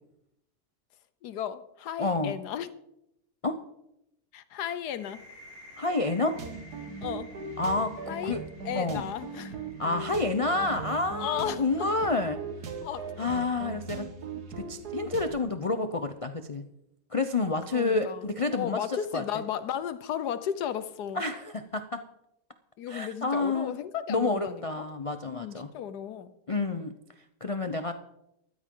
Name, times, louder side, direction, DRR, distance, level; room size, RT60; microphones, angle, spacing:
voice 1, 1.2-2.7 4.3-5.2 7.0-7.3 8.1-9.5 11.2-11.6 12.8-13.3 17.7-21.2 22.8-24.8 25.3-26.3, left 9 dB, 85° left, 13 dB, 1.4 m, -35 dB
voice 2, 2.0-2.4 3.4-3.6 5.8-6.4 7.6-8.4 8.7-9.1 9.8-12.4 13.2-14.1 14.6-16.7 17.1-19.2 21.1-22.0 22.9-23.8 24.1-25.7 26.5-27.0 27.4-27.9, left 3 dB, 50° left, 8 dB, 0.4 m, -29 dB
sound 1, 4.9-12.4, left 1 dB, 30° left, 3.9 m, -54 dB
sound 2, 6.3-15.3, right 4 dB, 70° right, 1.9 m, -39 dB
14.5 x 13.0 x 3.8 m, 0.81 s
omnidirectional pair, 1.7 m